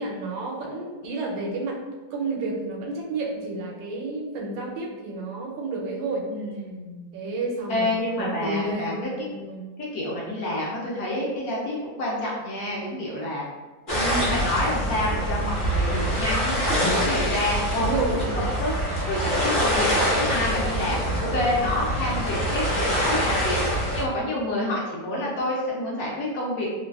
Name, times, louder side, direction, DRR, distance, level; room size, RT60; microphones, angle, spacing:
voice 1, 0.0-1.8 2.1-6.3 7.1-9.6 13.9-14.3 17.7-18.4, right 2 dB, 85° right, -1 dB, 1.3 m, -30 dB
voice 2, 6.3-7.1 7.7-9.3 9.9-13.4 14.3-18.7 19.1-23.6 23.9-26.7, left 1 dB, 70° left, -4 dB, 0.9 m, -28 dB
sound 1, 13.9-24.0, equal, 50° left, 0.6 m, -25 dB
3.2 x 2.3 x 2.2 m, 1.3 s
omnidirectional pair, 2.0 m